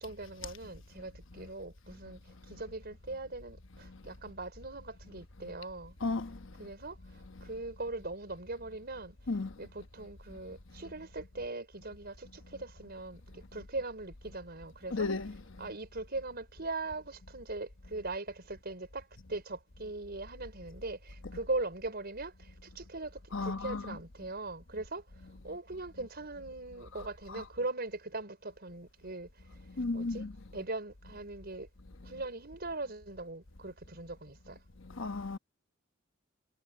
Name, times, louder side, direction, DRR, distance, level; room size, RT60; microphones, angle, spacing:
voice 1, 0.0-6.0 6.6-7.0 7.4-9.2 9.6-15.1 15.6-29.3 29.9-30.3 30.5-31.7 32.0-34.6, right 2 dB, 50° right, 4.9 m, -40 dB
voice 2, 6.0-6.4 9.3-9.5 14.9-15.4 23.3-24.0 27.3-27.4 29.8-30.3 35.0-35.4, left 3 dB, 70° left, 1.1 m, -34 dB
head